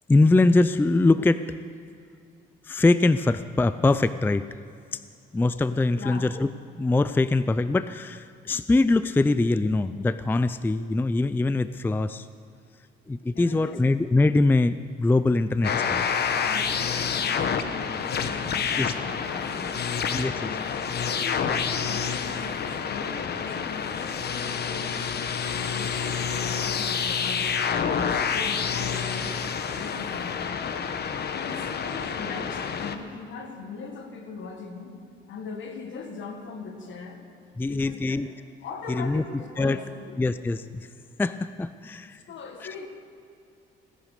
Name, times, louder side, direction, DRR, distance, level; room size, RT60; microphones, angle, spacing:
voice 1, 0.1-1.7 2.6-4.6 4.9-5.0 5.3-6.5 6.8-12.3 13.1-16.0 18.8-18.9 20.1-20.5 37.6-38.3 38.9-39.2 39.6-39.8 40.2-40.9 41.2-42.2 42.6-42.7, left 2 dB, 10° left, 14 dB, 0.4 m, -23 dB
voice 2, 5.9-6.3 13.3-13.8 16.4-19.9 20.3-27.7 28.0-30.7 31.3-35.0 35.3-37.2 37.7-38.2 38.6-40.2 42.3-42.9, left 4 dB, 70° left, 5 dB, 1.8 m, -40 dB
sound 1, 15.6-33.0, left 6 dB, 55° left, 1.0 m, -28 dB
17.5 x 10.5 x 6.6 m, 2.4 s
cardioid pair, 90°, 20 cm